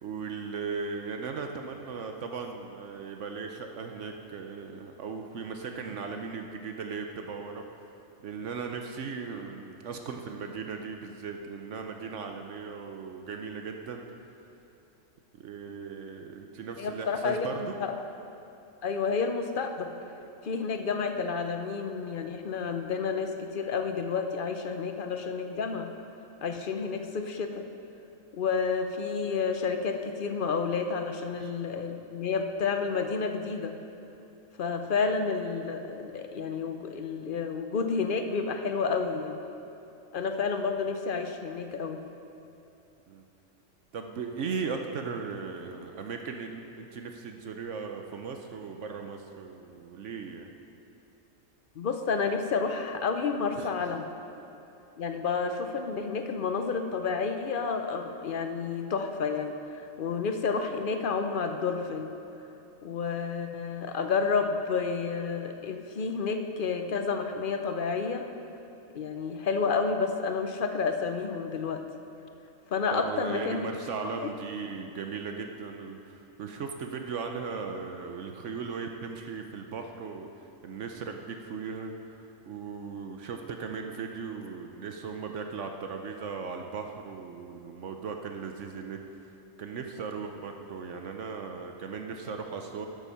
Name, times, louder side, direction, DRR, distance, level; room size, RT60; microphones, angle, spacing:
voice 1, 0.0-7.7 8.2-14.0 15.4-17.7 31.4-31.5 43.1-43.2 43.9-50.5 53.6-53.7 72.9-76.1 76.4-81.9 82.5-89.0 89.6-92.9, right 5 dB, 65° right, 4 dB, 1.0 m, -37 dB
voice 2, 16.8-17.5 17.8-17.9 18.8-20.0 20.4-25.9 26.4-27.6 28.3-33.8 34.6-39.4 40.1-42.0 51.8-54.1 55.0-59.5 60.0-62.1 62.8-68.2 68.9-71.8 72.7-73.7 74.2-74.3, left 5 dB, 50° left, 6 dB, 0.7 m, -30 dB
12.5 x 7.3 x 5.6 m, 2.9 s
omnidirectional pair, 1.4 m